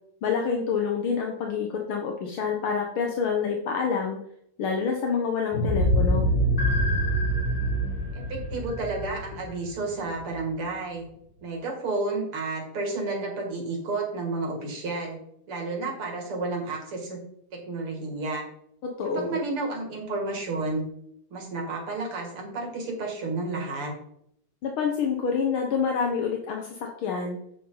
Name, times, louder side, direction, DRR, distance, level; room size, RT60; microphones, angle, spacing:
voice 1, 0.2-4.2 4.6-6.3 18.8-19.4 24.6-27.4, left 6 dB, 75° left, 1 dB, 2.0 m, -27 dB
sound 1, 5.5-10.3, equal, 5° right, 3.4 m, -25 dB
sound 2, 6.6-9.5, left 2 dB, 35° left, 2.1 m, -35 dB
voice 2, 8.3-11.1 11.4-15.2 15.5-17.2 17.5-18.4 19.1-20.8 21.3-23.9, right 3 dB, 80° right, 0 dB, 3.3 m, -31 dB
9.4 x 8.5 x 4.0 m, 0.71 s
omnidirectional pair, 2.4 m